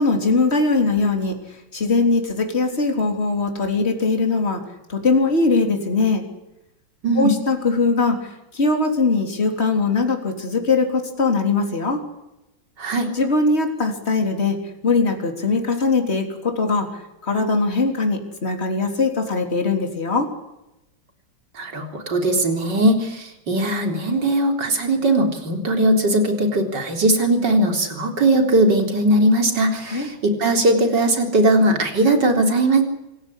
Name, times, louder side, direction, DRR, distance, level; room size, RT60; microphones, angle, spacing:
voice 1, 0.0-1.4 1.7-4.6 4.9-6.2 7.2-12.0 13.1-14.6 14.8-20.3 29.9-30.1, left 3 dB, 35° left, 4 dB, 3.8 m, -21 dB
voice 2, 7.0-7.3 12.8-13.1 21.6-32.8, right 1 dB, 65° right, 4 dB, 4.4 m, -19 dB
26.5 x 16.5 x 9.9 m, 0.92 s
omnidirectional pair, 2.0 m